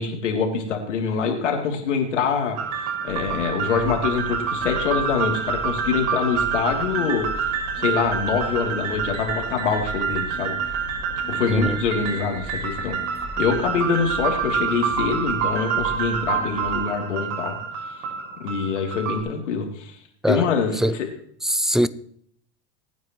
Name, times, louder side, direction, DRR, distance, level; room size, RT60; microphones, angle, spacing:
voice 1, 0.0-2.6 3.0-10.5 11.3-13.0 13.4-17.6 18.4-19.9 20.3-21.1, left 5 dB, 90° left, 3.2 m, -25 dB
sound 1, 2.6-19.2, right 7 dB, 55° right, 6.0 m, -27 dB
sound 2, 3.1-16.8, left 3 dB, 35° left, 3.8 m, -39 dB
voice 2, 11.5-11.8 20.2-20.5 20.7-21.0 21.4-21.9, right 1 dB, ahead, 0.5 m, -22 dB
23.5 x 9.3 x 3.2 m
hypercardioid pair, 95°, 35 cm